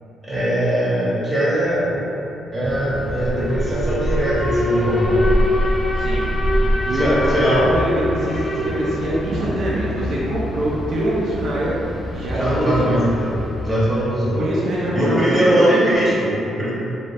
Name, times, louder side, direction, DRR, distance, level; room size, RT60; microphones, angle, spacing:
voice 1, 0.2-2.0 2.5-5.3 6.9-7.6 12.3-13.3 13.6-14.4 14.9-16.7, right 1 dB, 20° right, -9 dB, 0.9 m, -20 dB
Alarm, 2.6-14.7, equal, 25° left, 0.4 m, -24 dB
voice 2, 5.9-6.3 6.8-11.7 12.1-12.9 14.3-15.8, right 1 dB, 55° right, -6 dB, 0.5 m, -24 dB
2.6 x 2.3 x 3.2 m, 2.8 s
cardioid pair, 90°, 0 cm